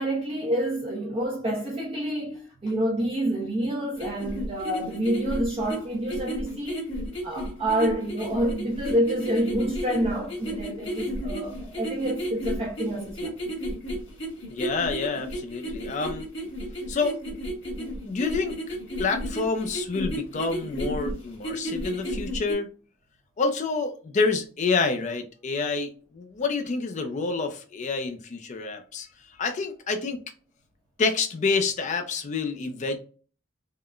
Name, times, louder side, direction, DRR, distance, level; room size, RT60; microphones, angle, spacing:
voice 1, 0.0-6.8 7.2-13.3, right 1 dB, 30° right, 0.7 m, -28 dB
sound 1, 4.0-22.5, equal, 65° left, 1.5 m, -33 dB
voice 2, 14.5-16.2 16.9-17.2 17.8-22.7 23.4-30.2 31.0-33.0, left 4 dB, 35° left, 0.4 m, -28 dB
3.6 x 2.1 x 2.3 m
head